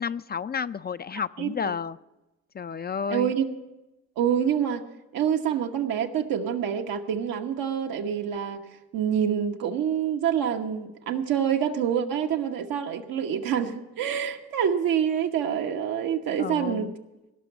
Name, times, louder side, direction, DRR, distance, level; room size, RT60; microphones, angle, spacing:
voice 1, 0.0-2.0 2.5-3.3 16.4-16.9, left 6 dB, 30° left, 14 dB, 0.4 m, -31 dB
voice 2, 3.1-3.5 4.2-4.8 5.1-8.6 8.9-16.9, right 8 dB, 80° right, 4 dB, 1.1 m, -26 dB
18.0 x 6.0 x 8.3 m, 1.0 s
supercardioid pair, 55°, 34 cm